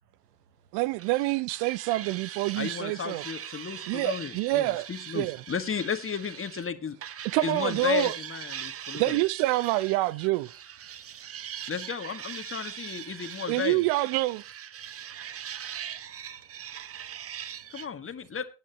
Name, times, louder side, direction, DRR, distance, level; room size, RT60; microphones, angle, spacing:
voice 1, 0.7-3.2 3.9-4.9 5.1-5.4 7.3-8.1 9.0-10.5 13.5-14.4, right 19 dB, 60° right, 0.6 m, -27 dB
sound 1, 1.0-6.7 7.0-17.9, right 9 dB, 30° right, 0.8 m, -41 dB
voice 2, 2.5-7.2 7.4-9.2 11.7-13.8 17.7-18.4, left 7 dB, 30° left, 1.7 m, -33 dB
voice 3, 14.9-17.9, right 8 dB, 85° right, 1.0 m, -63 dB
18.0 x 9.5 x 3.0 m
hypercardioid pair, 60°, 46 cm